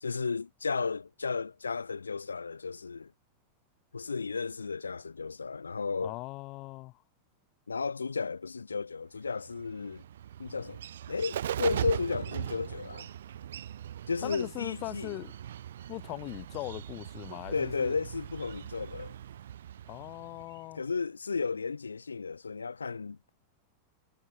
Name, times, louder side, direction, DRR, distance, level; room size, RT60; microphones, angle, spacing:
voice 1, 0.0-3.1 3.9-6.2 7.7-10.0 10.4-10.8 11.1-13.1 14.1-15.2 17.5-19.2 20.7-23.2, left 4 dB, 75° left, 1.9 m, -33 dB
voice 2, 6.0-7.0 14.2-15.3 15.9-18.0 19.8-20.8, left 21 dB, 40° left, 1.4 m, -40 dB
Bird, 9.3-20.7, right 10 dB, 60° right, 1.2 m, -40 dB
figure-of-eight pair, 90°, 0 cm